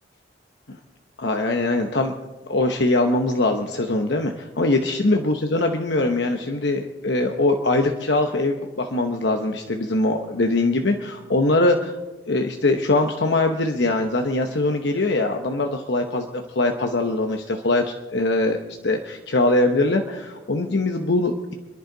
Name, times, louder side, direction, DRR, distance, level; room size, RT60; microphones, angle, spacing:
voice 1, 1.2-2.1 2.5-12.0 12.3-18.6 18.8-21.5, left 2 dB, 70° left, 4 dB, 1.0 m, -22 dB
28.5 x 11.0 x 3.9 m, 1.1 s
head